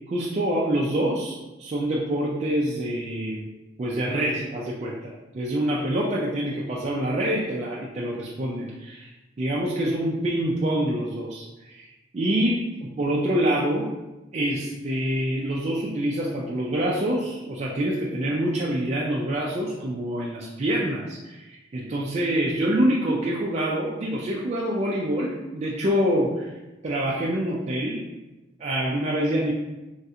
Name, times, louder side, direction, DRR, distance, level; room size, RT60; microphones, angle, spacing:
voice 1, 0.1-3.5 3.8-9.1 9.4-11.9 12.1-13.9 14.3-26.5 26.8-28.0 28.6-29.5, right 1 dB, 35° right, -5 dB, 0.3 m, -26 dB
3.1 x 2.3 x 2.7 m, 1.0 s
head